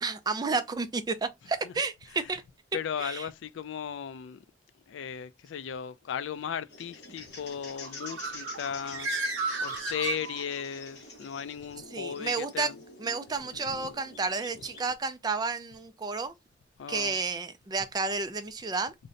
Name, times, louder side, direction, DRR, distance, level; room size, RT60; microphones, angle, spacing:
voice 1, 0.0-2.4 3.0-3.3 11.9-12.7 13.0-16.3 16.9-18.9, right 4 dB, 20° right, 0.3 m, -31 dB
voice 2, 2.7-4.4 4.9-12.8 13.7-13.8 16.8-17.2, left 8 dB, 75° left, 0.3 m, -36 dB
sound 1, 6.7-14.9, left 3 dB, 60° left, 0.9 m, -47 dB
Bird, 7.8-10.8, right 3 dB, 90° right, 0.6 m, -34 dB
2.6 x 2.1 x 3.8 m
head